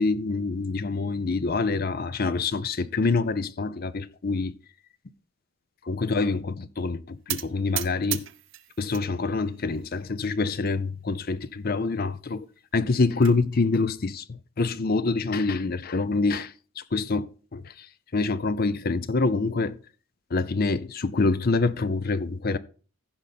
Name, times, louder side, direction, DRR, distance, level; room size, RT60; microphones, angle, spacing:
voice 1, 0.0-4.5 5.8-8.2 8.8-12.5 12.7-17.9 18.1-19.8 20.3-22.6, left 3 dB, 45° left, 0.5 m, -26 dB
sound 1, 7.3-9.1 9.5-10.1 10.6-10.8 11.0-11.1 11.5-11.6 12.7-13.4, right 15 dB, 60° right, 0.7 m, -35 dB
15.5 x 5.3 x 4.2 m
head